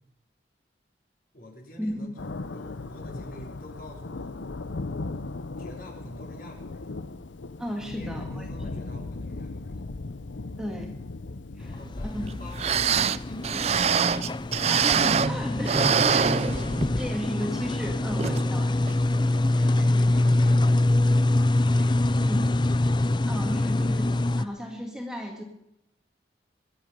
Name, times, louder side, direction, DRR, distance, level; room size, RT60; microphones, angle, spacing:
voice 1, 1.3-2.1 2.5-4.4 5.6-6.9 7.8-9.8 11.6-13.7 19.3-22.2, equal, 45° left, 1 dB, 3.7 m, -46 dB
Thunder, 2.2-15.2, left 3 dB, 80° left, 0.7 m, -38 dB
voice 2, 7.6-8.8 10.6-10.9 11.6-11.8 12.0-12.3 14.7-16.3 17.0-18.8 22.2-22.5 23.3-25.4, equal, 5° right, 1 dB, 1.9 m, -34 dB
sound 1, 11.6-24.4, left 2 dB, 25° left, 0.5 m, -25 dB
sound 2, 12.3-12.4 12.6-15.4 15.6-17.0 17.4-17.5 18.2-18.4 18.9-19.0, right 6 dB, 35° right, 0.4 m, -24 dB
23.0 x 8.8 x 5.3 m, 0.84 s
head